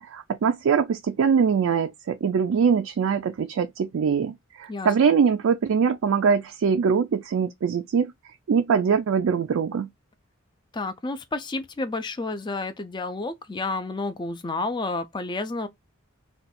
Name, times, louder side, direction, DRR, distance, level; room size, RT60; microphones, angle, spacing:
voice 1, 0.0-8.1 8.5-9.9, right 6 dB, 60° right, 0.3 m, -23 dB
voice 2, 10.7-15.7, left 3 dB, 20° left, 0.4 m, -30 dB
2.5 x 2.3 x 4.0 m
head